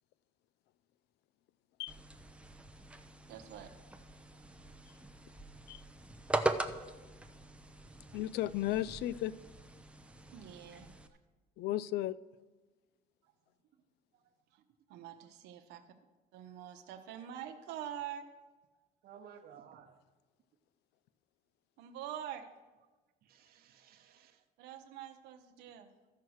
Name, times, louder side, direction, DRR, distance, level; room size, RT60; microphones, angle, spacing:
sound 1, 1.9-11.1, right 2 dB, 5° right, 0.6 m, -41 dB
voice 1, 3.3-3.7 4.4-4.5 10.3-10.9 14.5-14.6 14.9-15.9 16.3-18.3 21.8-22.5 24.6-25.9, right 10 dB, 90° right, 5 dB, 0.9 m, -45 dB
voice 2, 8.1-9.3 11.6-12.2, left 14 dB, 80° left, 19 dB, 0.4 m, -34 dB
voice 3, 19.0-20.0 23.2-24.4, right 8 dB, 65° right, 4 dB, 1.0 m, -56 dB
14.0 x 4.7 x 6.3 m, 1.2 s
cardioid pair, 110°, 17 cm